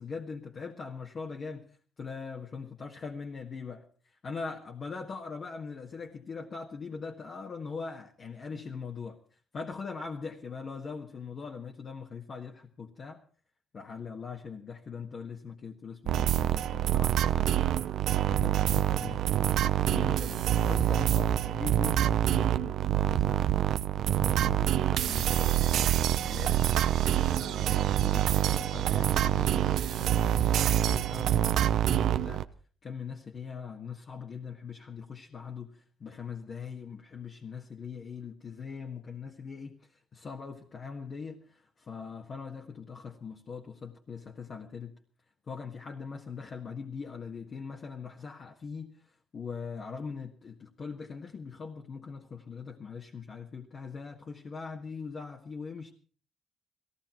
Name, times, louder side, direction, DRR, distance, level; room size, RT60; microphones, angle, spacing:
voice 1, 0.0-1.7 2.0-9.2 9.5-13.2 13.7-17.8 18.3-23.5 24.0-26.6 27.0-32.5 32.8-39.8 40.1-44.9 45.5-49.0 49.3-55.9, left 5 dB, 45° left, 1.6 m, -41 dB
sound 1, 16.1-32.4, right 11 dB, 75° right, 0.7 m, -26 dB
17.5 x 16.0 x 4.5 m
cardioid pair, 90°, 0 cm